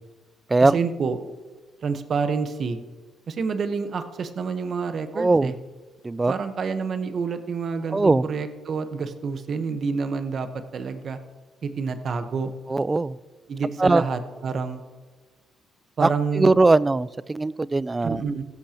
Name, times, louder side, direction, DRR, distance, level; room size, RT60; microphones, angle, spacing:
voice 1, 0.7-1.2 1.8-2.8 3.3-5.5 6.3-10.5 10.7-11.2 11.6-12.5 13.5-14.8 16.0-16.5 18.0-18.5, right 5 dB, 55° right, 8 dB, 1.1 m, -28 dB
voice 2, 5.1-5.5 6.0-6.3 7.9-8.2 12.7-13.2 13.8-14.0 16.0-16.1 16.3-18.2, right 3 dB, 20° right, 20 dB, 0.3 m, -20 dB
15.5 x 14.0 x 3.0 m, 1.3 s
cardioid pair, 90°, 0 cm